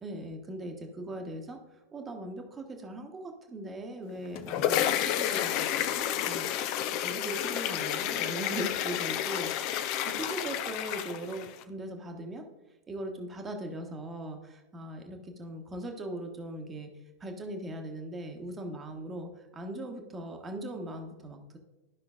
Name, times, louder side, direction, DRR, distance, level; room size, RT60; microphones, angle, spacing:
voice 1, 0.0-1.6 1.9-6.5 6.9-12.4 12.9-21.6, right 1 dB, 20° right, 4 dB, 1.2 m, -40 dB
sound 1, 4.1-11.6, left 11 dB, 45° left, 0.5 m, -30 dB
12.5 x 5.8 x 2.5 m, 1.1 s
figure-of-eight pair, 90°, 0 cm